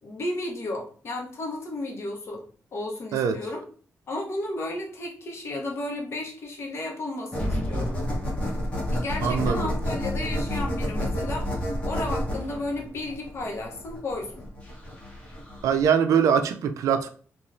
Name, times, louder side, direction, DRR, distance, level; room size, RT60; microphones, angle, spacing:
voice 1, 0.0-2.4 2.7-3.6 4.1-8.0 8.9-14.4, left 2 dB, 55° left, 0.8 m, -33 dB
sound 1, 7.3-15.8, equal, 25° left, 1.1 m, -29 dB
voice 2, 9.2-9.6 15.6-17.1, right 7 dB, 90° right, 0.3 m, -22 dB
3.0 x 2.3 x 2.5 m
cardioid pair, 110°, 5 cm